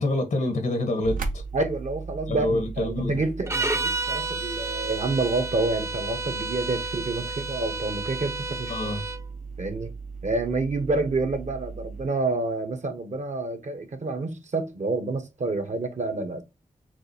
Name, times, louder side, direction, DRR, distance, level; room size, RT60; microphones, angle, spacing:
voice 1, 0.0-1.4 2.3-3.2 8.7-9.0, left 2 dB, 85° left, 1.1 m, -26 dB
sound 1, 1.0-12.1, right 4 dB, 80° right, 0.6 m, -37 dB
voice 2, 1.5-8.7 9.6-9.9 10.2-16.4, right 3 dB, 60° right, 0.9 m, -28 dB
sound 2, 3.5-9.2, right 3 dB, 20° right, 0.4 m, -31 dB
5.9 x 2.4 x 2.7 m
cardioid pair, 50°, 14 cm